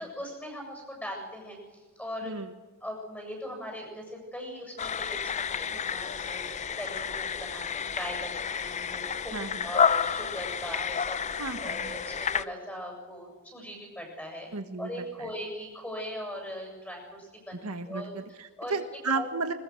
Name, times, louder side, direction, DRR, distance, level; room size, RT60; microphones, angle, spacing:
voice 1, 0.0-2.3 2.8-9.3 9.6-14.5 14.8-17.6 17.8-18.1 18.6-18.7 19.1-19.3, equal, 5° left, 1 dB, 7.8 m, -40 dB
sound 1, 4.8-12.4, left 6 dB, 30° left, 0.5 m, -30 dB
voice 2, 9.3-9.7 11.4-12.0 14.5-15.3 17.6-19.5, right 4 dB, 75° right, 8 dB, 1.5 m, -34 dB
21.0 x 20.5 x 6.5 m, 1.3 s
head